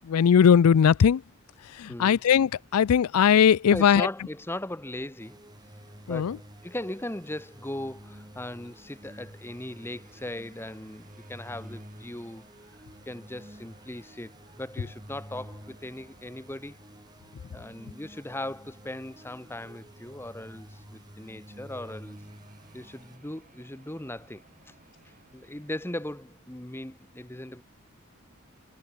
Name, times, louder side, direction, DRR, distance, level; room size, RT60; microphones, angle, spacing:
voice 1, 0.1-1.2 1.8-4.1 6.1-6.4, left 7 dB, 85° left, 0.4 m, -19 dB
voice 2, 1.9-2.2 3.7-5.4 6.1-12.4 13.1-16.8 17.5-22.2 22.7-24.7 25.3-27.6, left 1 dB, 10° left, 0.9 m, -38 dB
sound 1, 5.2-23.2, equal, 20° right, 4.3 m, -50 dB
sound 2, 9.3-26.3, right 2 dB, 35° right, 6.7 m, -62 dB
head